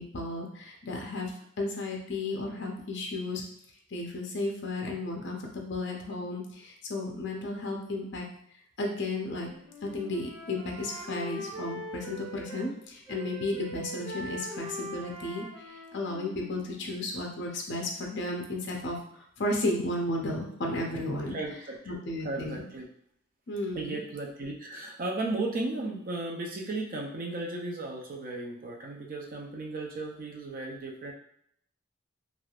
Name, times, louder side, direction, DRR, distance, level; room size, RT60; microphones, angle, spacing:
voice 1, 0.0-1.3 1.6-3.4 3.9-8.2 8.8-9.5 9.8-21.4 21.9-22.7 23.5-24.0, left 2 dB, 55° left, 1 dB, 0.5 m, -33 dB
Wind instrument woodwind instrument, 9.2-12.7 13.1-17.1, equal, 25° right, 1.3 m, -42 dB
voice 2, 21.3-22.0 22.2-22.9 23.7-31.1, right 2 dB, 45° right, 0 dB, 0.4 m, -35 dB
3.3 x 2.4 x 2.3 m, 0.68 s
head